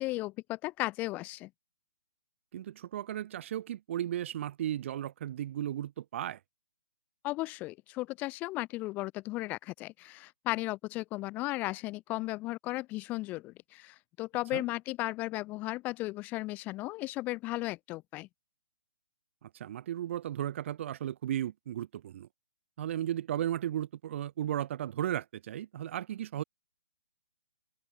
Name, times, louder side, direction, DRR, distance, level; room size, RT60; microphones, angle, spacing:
voice 1, 0.0-1.5 7.2-18.3, left 19 dB, 15° left, 0.7 m, -35 dB
voice 2, 2.5-6.4 14.5-14.6 19.4-22.3 22.8-26.4, right 11 dB, 35° right, 0.7 m, -35 dB
hypercardioid pair, 165°, 11 cm